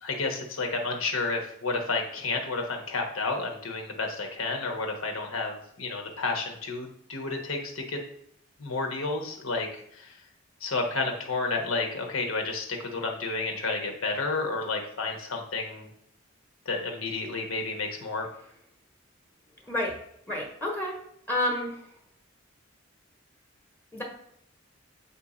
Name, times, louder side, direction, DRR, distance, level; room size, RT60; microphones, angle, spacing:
voice 1, 0.0-8.0 8.6-10.1 10.6-15.9 16.6-18.3, left 3 dB, 85° left, 2 dB, 1.1 m, -31 dB
voice 2, 20.3-21.0 21.3-21.8 23.9-24.0, left 1 dB, 10° left, -1 dB, 1.0 m, -29 dB
7.7 x 2.8 x 4.9 m, 0.72 s
head